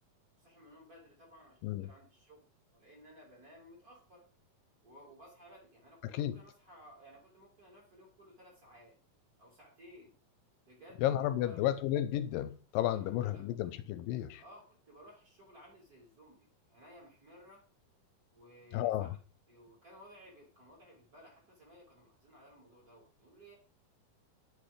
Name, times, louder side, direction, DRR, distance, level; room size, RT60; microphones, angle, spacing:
voice 1, 0.4-2.5 2.7-4.3 4.8-8.9 9.4-10.1 10.7-11.6 12.8-13.7 14.3-17.6 18.3-19.1 19.5-23.5, equal, 25° right, 3.1 m, -57 dB
voice 2, 6.0-6.4 11.0-14.4 18.7-19.1, left 12 dB, 90° left, 2.3 m, -32 dB
8.3 x 4.5 x 4.9 m
omnidirectional pair, 4.0 m